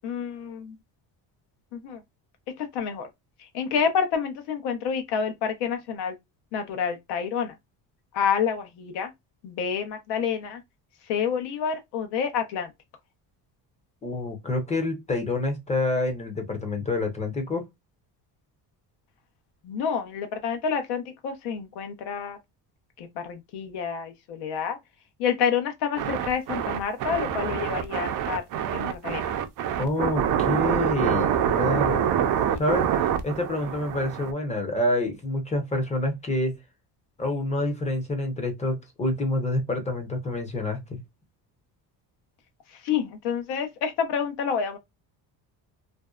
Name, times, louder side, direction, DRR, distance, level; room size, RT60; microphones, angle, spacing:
voice 1, 0.0-0.8 1.7-2.0 2.6-3.1 3.4-6.2 6.5-7.5 8.1-9.1 9.4-10.6 11.1-12.7 19.6-22.4 23.0-24.8 25.2-28.5 28.7-29.2 42.7-44.8, left 7 dB, 80° left, 0.8 m, -28 dB
voice 2, 14.0-17.6 29.8-32.2 32.6-32.9 33.2-36.6 37.2-41.0, left 2 dB, 15° left, 0.6 m, -27 dB
sound 1, 26.0-34.3, right 9 dB, 55° right, 0.5 m, -26 dB
2.6 x 2.1 x 2.2 m
cardioid pair, 145°, 41 cm